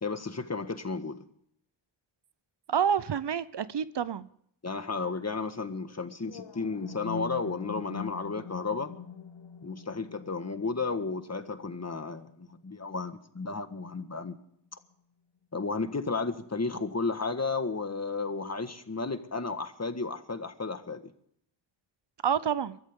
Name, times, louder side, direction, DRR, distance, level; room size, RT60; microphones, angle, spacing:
voice 1, 0.0-1.2 4.6-8.9 9.6-14.4 15.5-21.0, left 4 dB, 35° left, 1.6 m, -33 dB
voice 2, 2.7-4.3 22.2-22.8, right 8 dB, 60° right, 0.8 m, -28 dB
sound 1, 6.2-14.2, left 7 dB, 65° left, 0.9 m, -44 dB
23.0 x 13.5 x 3.7 m
cardioid pair, 60°, 46 cm